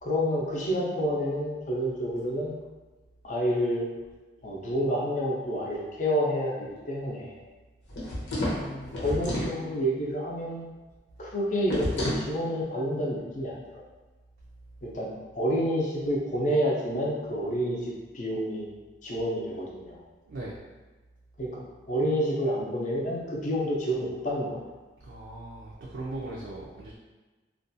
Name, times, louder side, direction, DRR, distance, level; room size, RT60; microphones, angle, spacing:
voice 1, 0.0-2.5 3.2-3.9 4.4-7.4 8.5-10.7 11.2-13.8 14.8-18.7 19.0-20.0 21.4-21.6 21.9-24.6, equal, 45° left, -3 dB, 0.5 m, -29 dB
sound 1, 7.9-9.6 11.7-12.3, left 1 dB, 80° left, 0.7 m, -30 dB
voice 2, 25.1-27.0, right 2 dB, 75° right, -6 dB, 0.4 m, -38 dB
2.5 x 2.2 x 2.6 m, 1.3 s
head